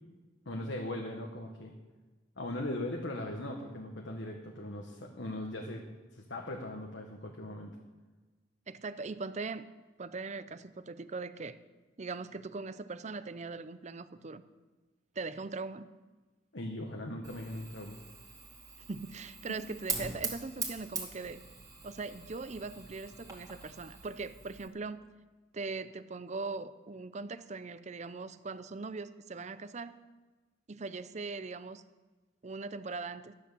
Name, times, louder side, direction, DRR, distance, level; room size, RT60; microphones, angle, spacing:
voice 1, 0.4-1.7 2.4-5.8 6.1-7.7 16.5-18.0 19.5-19.6, left 1 dB, 70° left, 1 dB, 1.4 m, -39 dB
voice 2, 8.7-9.7 10.0-11.6 12.0-14.4 15.2-15.9 18.9-21.4 21.8-25.0 25.5-30.0 30.7-31.8 32.4-33.3, right 3 dB, 40° right, 13 dB, 0.6 m, -40 dB
Fire, 17.2-24.7, right 4 dB, 20° right, 2.4 m, -42 dB
13.0 x 10.5 x 6.9 m, 1.3 s
head